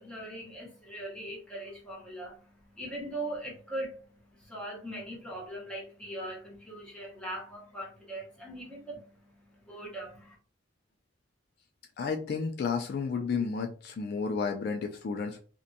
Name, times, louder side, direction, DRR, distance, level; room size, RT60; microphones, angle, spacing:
voice 1, 0.0-10.4, right 1 dB, 5° left, -4 dB, 0.9 m, -41 dB
voice 2, 12.0-15.4, left 5 dB, 55° left, 5 dB, 0.3 m, -32 dB
2.6 x 2.2 x 2.6 m, 0.41 s
head